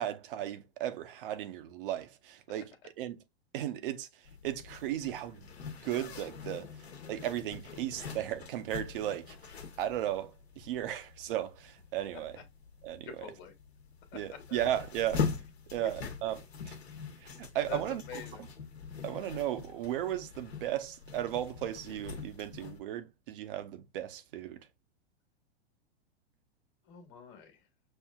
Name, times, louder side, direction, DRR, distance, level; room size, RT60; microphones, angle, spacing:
voice 1, 0.0-2.7 3.0-3.2 3.5-4.1 4.4-5.5 5.8-6.7 7.1-9.4 9.8-12.3 12.8-13.1 14.1-15.3 15.7-16.8 17.2-18.0 19.0-24.7, right 12 dB, 55° right, 0.7 m, -35 dB
Zipper (clothing), 4.2-22.8, left 6 dB, 75° left, 1.1 m, -42 dB
voice 2, 13.0-13.5 14.1-14.6 15.8-15.9 17.7-18.5 26.8-27.7, left 8 dB, 35° left, 1.4 m, -46 dB
6.3 x 2.6 x 2.3 m
figure-of-eight pair, 100°, 33 cm